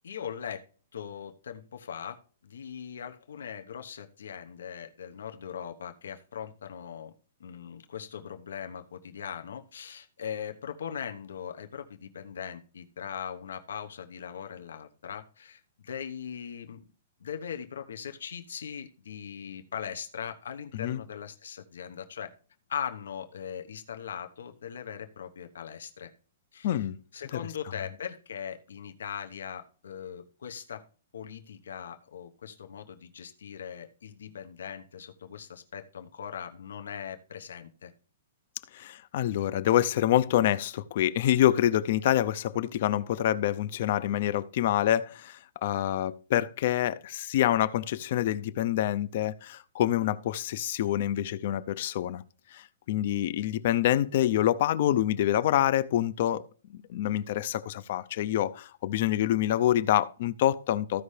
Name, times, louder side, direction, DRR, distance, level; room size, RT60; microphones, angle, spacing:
voice 1, 0.0-0.6 0.9-2.2 2.4-7.1 7.4-16.8 17.2-22.3 22.7-26.1 26.5-26.9 27.1-30.9 31.1-37.9, left 8 dB, 90° left, 1.1 m, -40 dB
voice 2, 26.6-26.9 38.7-52.2 52.5-56.5 56.9-61.0, left 12 dB, 35° left, 0.5 m, -26 dB
15.0 x 5.6 x 3.3 m
hypercardioid pair, 180°, 0 cm